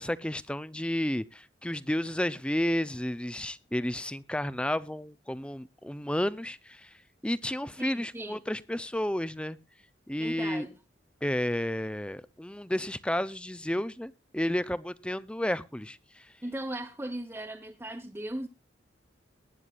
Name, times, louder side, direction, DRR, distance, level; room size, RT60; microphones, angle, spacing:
voice 1, 0.0-6.9 7.2-9.6 10.1-10.7 11.2-16.3, left 1 dB, 5° left, 0.5 m, -32 dB
voice 2, 7.8-8.4 10.2-10.8 16.4-18.5, right 1 dB, 10° right, 1.1 m, -38 dB
21.0 x 9.8 x 2.5 m
head